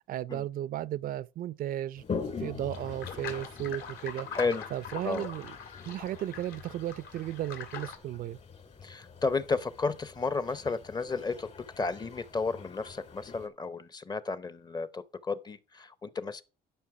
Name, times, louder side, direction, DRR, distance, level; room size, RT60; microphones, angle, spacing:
voice 1, 0.1-2.0 2.4-4.3 4.7-5.6 5.8-8.4, right 12 dB, 55° right, 0.4 m, -35 dB
Toilet flush, 2.0-13.5, left 5 dB, 40° left, 2.3 m, -44 dB
sound 1, 2.7-8.0, left 7 dB, 65° left, 2.5 m, -43 dB
voice 2, 4.3-4.6 5.0-5.3 8.8-11.5 11.8-16.4, left 4 dB, 25° left, 0.8 m, -32 dB
11.5 x 5.5 x 4.8 m
cardioid pair, 110°, 17 cm